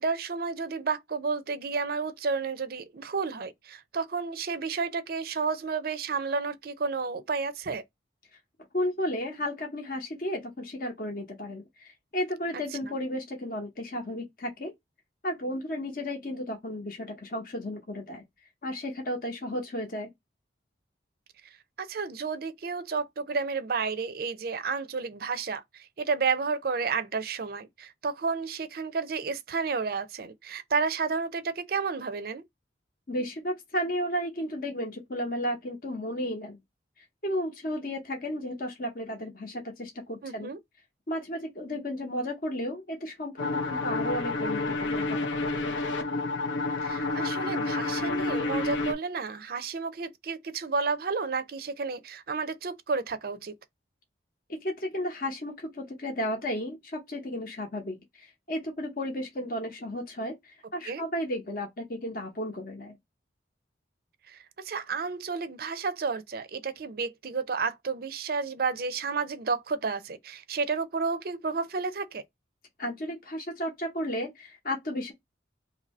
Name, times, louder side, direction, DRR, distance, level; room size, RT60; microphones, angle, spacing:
voice 1, 0.0-7.8 12.8-12.9 21.8-32.4 40.2-40.6 46.8-53.5 60.9-61.0 64.3-72.2, right 4 dB, 50° right, 0.4 m, -31 dB
voice 2, 8.7-14.7 15.2-18.2 18.6-20.1 33.1-36.6 37.2-40.5 41.1-45.3 54.5-63.0 72.8-75.1, equal, 45° left, 0.8 m, -33 dB
sound 1, 43.4-48.9, left 3 dB, 80° left, 0.6 m, -29 dB
2.7 x 2.6 x 4.1 m
head